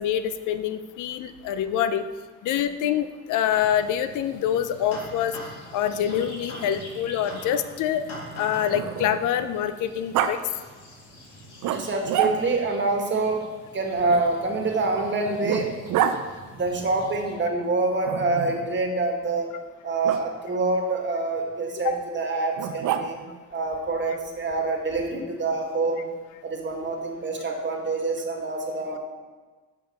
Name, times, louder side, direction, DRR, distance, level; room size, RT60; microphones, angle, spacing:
voice 1, 0.0-2.0 2.4-5.4 5.7-8.0 8.4-10.4 21.8-22.0, left 10 dB, 85° left, 11 dB, 0.6 m, -25 dB
sound 1, 3.5-17.4, equal, 55° left, 2.5 m, -44 dB
Growling, 6.0-9.4 10.1-10.3 11.6-12.7 14.1-16.2 18.0-18.7 20.0-20.2 22.6-23.4, right 9 dB, 90° right, 0.6 m, -29 dB
voice 2, 11.7-13.4 13.7-15.7 16.5-19.5 19.8-23.2 23.5-26.0 26.4-29.0, right 3 dB, 40° right, 2 dB, 1.6 m, -26 dB
7.2 x 5.4 x 5.9 m, 1.3 s
cardioid pair, 90°, 30 cm